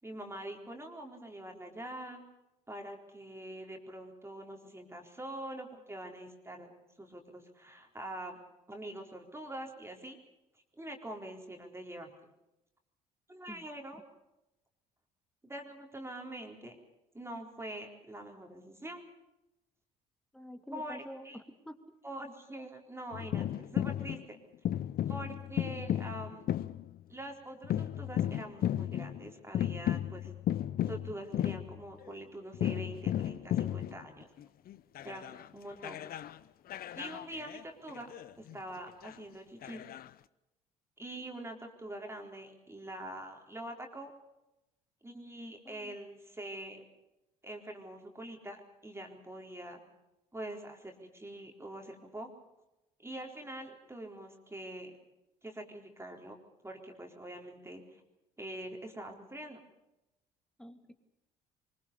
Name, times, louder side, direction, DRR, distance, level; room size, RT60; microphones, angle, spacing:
voice 1, 0.0-2.2 2.7-6.7 7.0-8.4 8.7-10.2 10.8-12.1 13.3-14.0 15.4-16.8 17.1-19.1 20.7-21.4 22.0-24.4 25.1-26.5 27.1-30.3 30.9-34.3 35.0-35.2 35.5-36.0 36.9-39.8 41.0-44.1 45.0-46.8 47.4-49.8 50.3-52.3 53.0-54.9 55.4-56.4 56.6-58.0 58.4-59.6, right 1 dB, 10° right, 2 dB, 4.1 m, -44 dB
voice 2, 20.3-21.8 45.6-46.0 60.6-60.9, equal, 5° left, 8 dB, 2.7 m, -47 dB
sound 1, 23.1-24.2 24.6-27.0 27.6-32.1 32.5-35.5 35.8-36.4 36.7-38.6 38.9-39.1 39.6-40.1, left 11 dB, 50° left, 0.8 m, -34 dB
24.0 x 22.5 x 6.9 m, 0.91 s
figure-of-eight pair, 55°, 20 cm